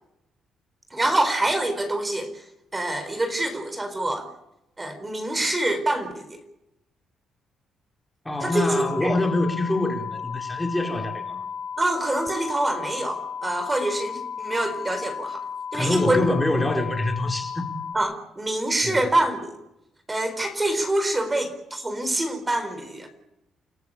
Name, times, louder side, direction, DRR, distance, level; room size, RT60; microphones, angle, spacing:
voice 1, 0.9-2.4 2.7-4.3 4.8-6.4 8.4-9.2 11.8-15.5 15.7-16.2 17.9-19.6 20.1-23.1, right 1 dB, 20° right, 8 dB, 4.2 m, -26 dB
voice 2, 8.2-11.4 15.7-17.7 18.8-19.0, left 2 dB, 10° left, 3 dB, 4.3 m, -25 dB
sound 1, 8.3-18.0, left 7 dB, 85° left, 5.1 m, -34 dB
29.0 x 14.0 x 8.6 m, 0.88 s
cardioid pair, 90°, 0 cm